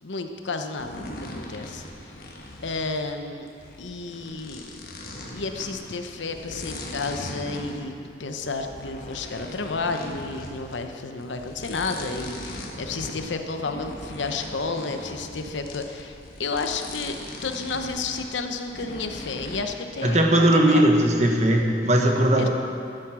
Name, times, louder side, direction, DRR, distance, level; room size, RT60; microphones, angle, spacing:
voice 1, 0.0-2.2 2.6-3.5 3.8-4.6 5.3-20.5 20.7-20.8 22.4-22.5, left 3 dB, 90° left, 6 dB, 0.8 m, -31 dB
sound 1, 0.8-19.6, left 1 dB, 50° left, 1.3 m, -39 dB
voice 2, 20.0-22.5, right 1 dB, 40° right, 1 dB, 1.2 m, -19 dB
12.0 x 7.8 x 6.2 m, 2.4 s
head